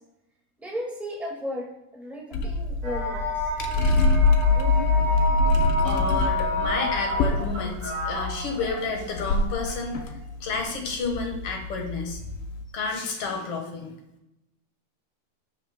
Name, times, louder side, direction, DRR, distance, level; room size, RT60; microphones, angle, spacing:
voice 1, 0.6-1.7 1.9-3.3, equal, ahead, -2 dB, 0.8 m, -34 dB
sound 1, 2.3-12.6, left 3 dB, 80° left, 1.2 m, -25 dB
sound 2, 2.8-10.2 11.0-12.5, left 1 dB, 85° right, 4.1 m, -30 dB
voice 2, 5.8-10.0 10.4-12.2 12.7-13.9, left 4 dB, 55° left, 2 dB, 2.0 m, -31 dB
16.0 x 5.6 x 2.2 m, 0.89 s
omnidirectional pair, 3.4 m